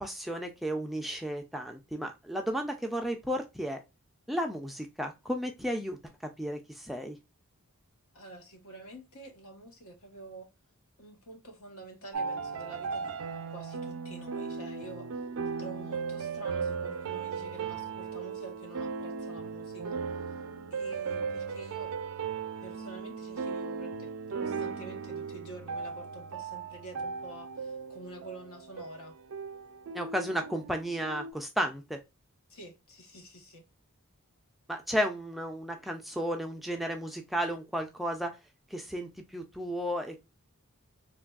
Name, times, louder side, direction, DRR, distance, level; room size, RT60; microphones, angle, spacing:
voice 1, 0.0-3.8 4.3-6.0 6.4-7.2 29.9-32.0 34.7-38.3 38.7-40.2, equal, ahead, 0.3 m, -33 dB
voice 2, 8.1-10.5 11.0-13.2 13.4-15.3 15.6-20.4 20.7-22.0 22.6-29.2 32.5-33.6, right 2 dB, 70° left, 1.0 m, -48 dB
sound 1, 12.1-31.3, right 5 dB, 70° right, 0.4 m, -37 dB
3.3 x 2.2 x 2.3 m
head